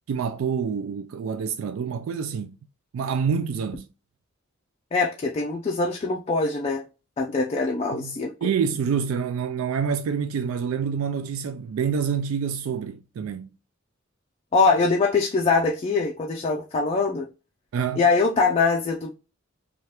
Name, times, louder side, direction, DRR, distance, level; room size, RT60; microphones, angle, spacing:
voice 1, 0.1-2.6 2.9-3.9 7.9-13.5 17.7-18.0, right 6 dB, 85° right, 0.3 m, -27 dB
voice 2, 4.9-6.8 7.2-8.5 14.5-17.3 17.9-19.1, left 4 dB, 30° left, 0.3 m, -23 dB
2.8 x 2.4 x 3.2 m
head